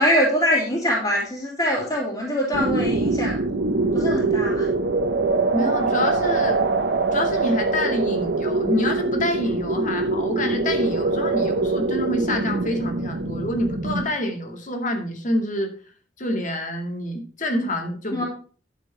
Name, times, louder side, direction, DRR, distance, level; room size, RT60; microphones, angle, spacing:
voice 1, 0.0-4.7 18.1-18.2, equal, 25° left, -7 dB, 3.0 m, -23 dB
sound 1, 2.5-14.1, right 3 dB, 80° right, 1.0 m, -23 dB
voice 2, 5.5-6.6 7.1-15.7 16.2-18.2, left 1 dB, 45° left, 4 dB, 2.3 m, -27 dB
11.5 x 7.1 x 4.4 m, 0.41 s
head